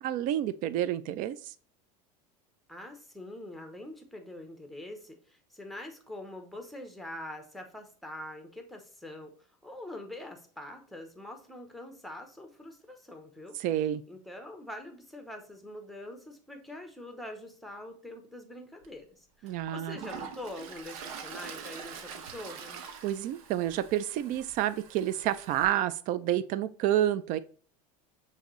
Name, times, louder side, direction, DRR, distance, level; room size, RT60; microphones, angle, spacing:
voice 1, 0.0-1.5 13.6-14.0 19.4-20.0 23.0-27.4, right 12 dB, 50° right, 15 dB, 0.4 m, -29 dB
voice 2, 2.7-9.3 9.6-13.6 14.1-22.8, left 1 dB, ahead, 5 dB, 0.7 m, -44 dB
Toilet flush, 18.8-18.9 19.5-25.7, right 6 dB, 85° right, 0.8 m, -44 dB
6.3 x 2.7 x 3.1 m, 0.43 s
supercardioid pair, 135°, 18 cm